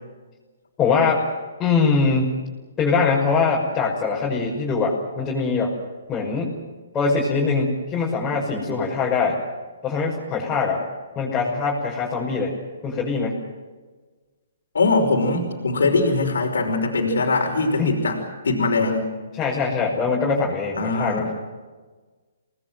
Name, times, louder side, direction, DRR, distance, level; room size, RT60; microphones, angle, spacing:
voice 1, 0.8-1.2 1.6-2.3 2.8-5.7 6.1-6.5 6.9-9.4 9.8-10.8 11.2-12.5 12.8-13.4 17.8-18.0 19.4-21.3, left 4 dB, 20° left, -4 dB, 6.1 m, -22 dB
voice 2, 14.7-18.2 18.4-19.1 20.7-21.2, left 3 dB, 80° left, 2 dB, 5.5 m, -21 dB
28.5 x 20.0 x 7.9 m, 1.3 s
hypercardioid pair, 140°, 0 cm